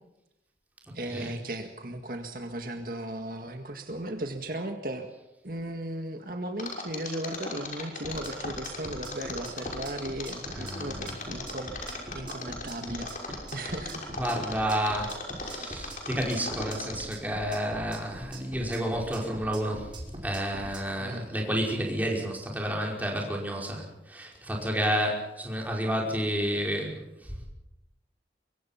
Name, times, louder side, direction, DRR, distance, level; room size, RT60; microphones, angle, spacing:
voice 1, 0.9-5.1 5.4-14.1 14.4-14.7 21.0-21.3, right 1 dB, 55° right, 4 dB, 1.9 m, -36 dB
Mechanisms, 6.6-17.2 17.5-17.6, left 4 dB, 50° left, 6.1 m, -37 dB
sound 1, 8.0-20.8, right 1 dB, 25° right, 5.2 m, -43 dB
voice 2, 10.5-11.1 14.2-19.9 20.2-27.5, equal, 10° right, -1 dB, 5.1 m, -30 dB
24.5 x 23.5 x 5.9 m, 0.89 s
head